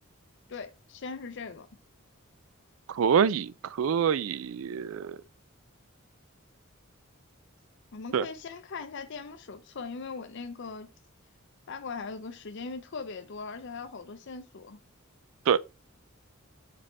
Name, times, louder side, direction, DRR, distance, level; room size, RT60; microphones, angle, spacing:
voice 1, 0.5-1.7 7.9-10.9 11.7-14.8, left 4 dB, 60° left, 0.6 m, -40 dB
voice 2, 2.9-3.5 3.8-5.2 8.1-8.3 15.5-15.6, right 7 dB, 70° right, 0.4 m, -25 dB
5.2 x 4.2 x 4.3 m
head